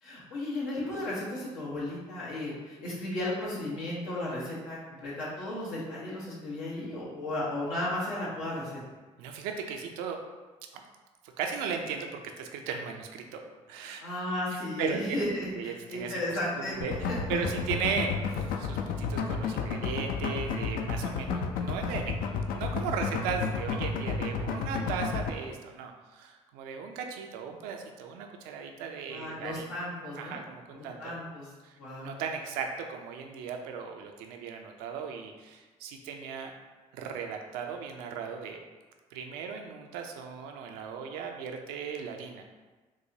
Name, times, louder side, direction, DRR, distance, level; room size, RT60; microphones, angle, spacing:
voice 1, 0.0-8.8 14.0-16.7 17.1-17.2 29.1-30.4 30.7-31.5 31.8-32.1, left 1 dB, 85° left, -7 dB, 1.1 m, -34 dB
voice 2, 9.2-10.2 11.4-13.4 13.7-14.0 14.5-15.2 15.5-17.0 17.3-22.1 22.5-29.6 30.2-31.2 31.6-36.6 36.9-38.6 39.1-42.4, right 6 dB, 85° right, 3 dB, 0.4 m, -37 dB
sound 1, 16.8-25.3, left 5 dB, 70° left, 0.4 m, -31 dB
4.6 x 2.1 x 2.7 m, 1.3 s
supercardioid pair, 60°, 15 cm